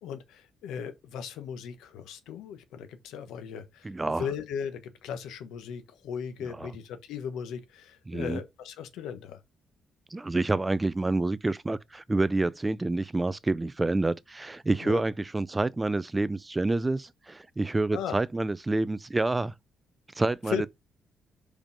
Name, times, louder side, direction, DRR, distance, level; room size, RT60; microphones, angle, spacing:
voice 1, 0.0-3.9 4.2-9.4 14.8-15.0 17.9-18.2 20.5-20.7, left 7 dB, 85° left, 1.2 m, -37 dB
voice 2, 3.8-4.3 6.6-6.7 8.1-8.4 10.1-19.5 20.1-20.7, right 2 dB, 20° right, 0.3 m, -28 dB
5.2 x 5.0 x 5.2 m
cardioid pair, 90°, 0 cm